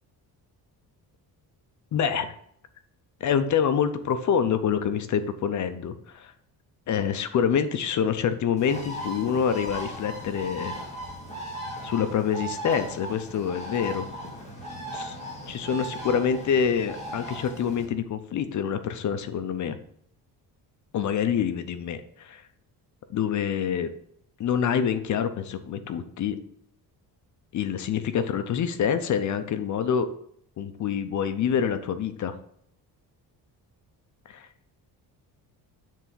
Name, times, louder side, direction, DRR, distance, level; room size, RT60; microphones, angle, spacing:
voice 1, 1.9-2.3 3.2-6.3 6.9-10.7 11.8-14.1 14.9-15.2 15.5-19.8 20.9-22.4 23.1-23.9 24.4-26.4 27.5-30.1 30.6-32.3 34.3-34.5, left 7 dB, 50° left, 10 dB, 0.6 m, -26 dB
Bird, 8.6-17.8, right 1 dB, 15° left, 1.8 m, -37 dB
7.4 x 3.4 x 5.5 m, 0.68 s
cardioid pair, 165°, 39 cm